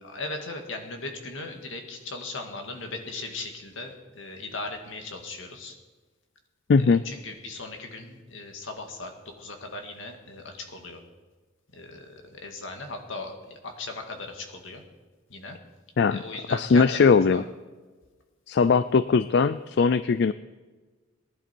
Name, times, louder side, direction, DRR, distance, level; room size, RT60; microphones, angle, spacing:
voice 1, 0.0-5.8 6.8-11.0 11.7-14.8 15.3-15.6 16.1-17.5, left 2 dB, 75° left, 4 dB, 2.0 m, -38 dB
voice 2, 6.7-7.0 16.0-16.2 16.5-17.4 18.5-20.3, left 5 dB, 55° left, 15 dB, 0.4 m, -20 dB
19.0 x 11.5 x 4.5 m, 1.3 s
head